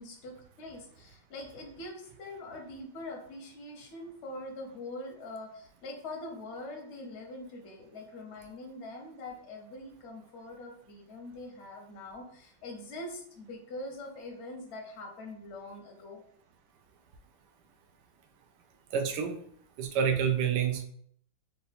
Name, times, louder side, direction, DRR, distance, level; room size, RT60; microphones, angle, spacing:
voice 1, 0.0-16.2, left 2 dB, 50° left, 1 dB, 0.8 m, -43 dB
voice 2, 18.9-19.4 19.8-20.8, right 7 dB, 70° right, 6 dB, 1.1 m, -28 dB
3.8 x 2.5 x 4.0 m, 0.62 s
omnidirectional pair, 2.2 m